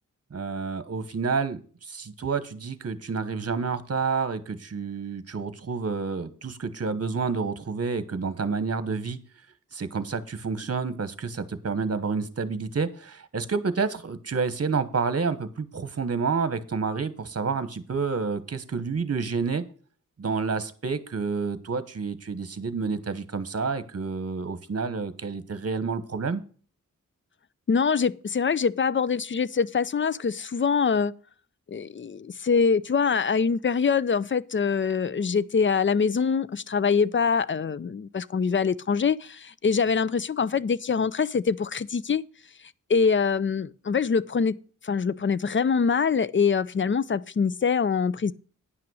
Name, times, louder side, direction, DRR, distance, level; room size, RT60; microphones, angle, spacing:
voice 1, 0.3-9.2 9.7-19.6 20.2-26.4, right 5 dB, 50° right, 1.1 m, -29 dB
voice 2, 27.7-31.1 31.7-42.2 42.9-44.6 44.8-48.3, left 5 dB, 40° left, 0.5 m, -24 dB
10.0 x 5.9 x 6.3 m
wide cardioid pair, 60°, 32 cm